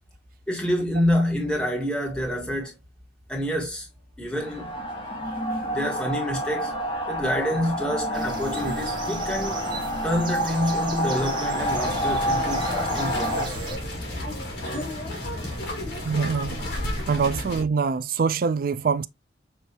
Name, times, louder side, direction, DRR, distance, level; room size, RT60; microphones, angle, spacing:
voice 1, 0.5-2.8 3.3-3.9 4.2-4.7 5.7-6.7 7.1-9.7 10.0-13.6, equal, 5° left, 1.4 m, -27 dB
sound 1, 4.3-13.5, equal, 30° left, 1.5 m, -28 dB
sound 2, 8.1-13.8, right 3 dB, 25° right, 0.8 m, -36 dB
sound 3, 11.6-17.6, left 1 dB, 70° left, 2.6 m, -32 dB
voice 2, 16.0-16.7 17.1-19.1, right 5 dB, 50° right, 0.4 m, -24 dB
6.8 x 2.7 x 2.8 m
head